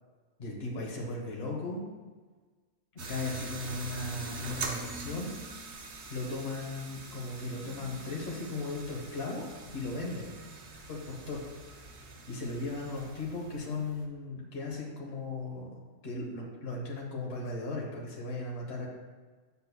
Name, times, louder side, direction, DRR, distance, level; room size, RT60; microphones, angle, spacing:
voice 1, 0.4-1.8 3.1-5.3 5.6-9.4 9.7-10.3 10.9-11.4 12.3-18.9, left 2 dB, 55° left, -3 dB, 1.4 m, -37 dB
sound 1, 3.0-14.0, right 2 dB, 65° right, 1.0 m, -43 dB
7.0 x 6.3 x 2.3 m, 1.4 s
omnidirectional pair, 1.3 m